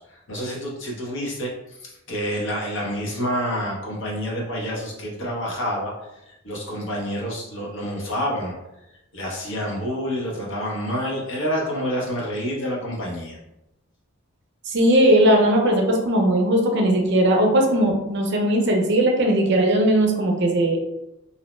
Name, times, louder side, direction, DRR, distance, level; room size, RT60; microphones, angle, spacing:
voice 1, 0.0-8.5 9.1-13.4, equal, 60° left, -3 dB, 0.8 m, -28 dB
voice 2, 14.7-20.8, right 1 dB, 55° right, 1 dB, 0.5 m, -18 dB
2.6 x 2.0 x 3.1 m, 0.90 s
head